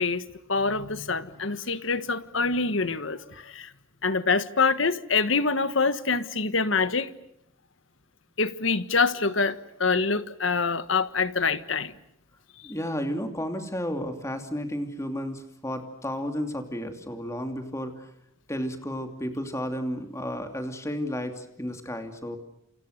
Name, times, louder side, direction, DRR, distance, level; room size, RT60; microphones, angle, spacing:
voice 1, 0.0-3.7 4.0-7.1 8.4-11.9, left 4 dB, 70° left, 1.5 m, -25 dB
voice 2, 12.6-18.1 18.5-22.4, equal, 15° left, 2.8 m, -32 dB
29.0 x 28.5 x 6.7 m
head